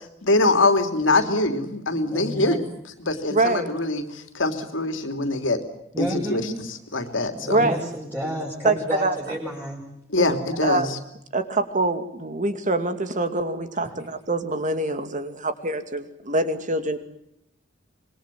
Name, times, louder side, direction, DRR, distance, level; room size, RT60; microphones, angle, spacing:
voice 1, 0.0-2.6 3.0-5.6 6.0-6.5 6.9-7.7 10.1-11.0, left 2 dB, 75° left, 7 dB, 3.1 m, -23 dB
voice 2, 2.1-2.6 5.9-6.5 7.3-9.8 13.8-13.9, equal, 10° right, -6 dB, 6.4 m, -30 dB
voice 3, 3.3-3.7 7.5-7.9 8.6-9.2 10.2-10.3 10.6-10.9 11.3-17.0, right 2 dB, 40° right, 9 dB, 2.5 m, -25 dB
26.5 x 22.5 x 7.6 m, 0.78 s
head